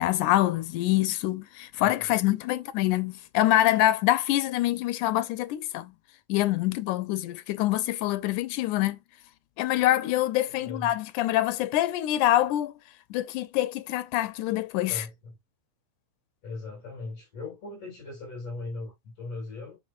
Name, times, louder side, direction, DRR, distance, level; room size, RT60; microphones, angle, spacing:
voice 1, 0.0-5.9 6.3-9.0 9.6-12.7 13.1-15.0, left 14 dB, 90° left, 2.2 m, -25 dB
voice 2, 1.8-2.2 10.4-11.0 14.9-15.4 16.4-19.8, left 3 dB, 55° left, 4.1 m, -39 dB
7.7 x 5.7 x 2.6 m
omnidirectional pair, 3.5 m